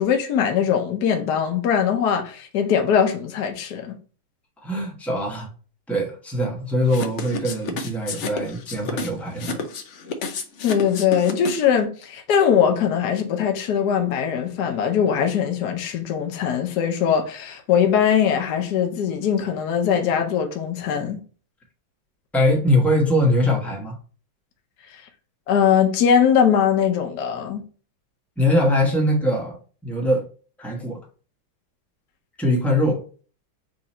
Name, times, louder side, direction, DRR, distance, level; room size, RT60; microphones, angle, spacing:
voice 1, 0.0-4.0 10.6-21.2 25.5-27.6, left 8 dB, 65° left, 1.2 m, -21 dB
voice 2, 4.6-5.5 5.9-9.6 22.3-23.9 28.4-30.3 30.6-31.0 32.4-33.0, left 1 dB, ahead, 0.6 m, -22 dB
sound 1, 6.9-11.8, left 5 dB, 90° left, 0.6 m, -31 dB
3.8 x 2.7 x 4.2 m
omnidirectional pair, 2.1 m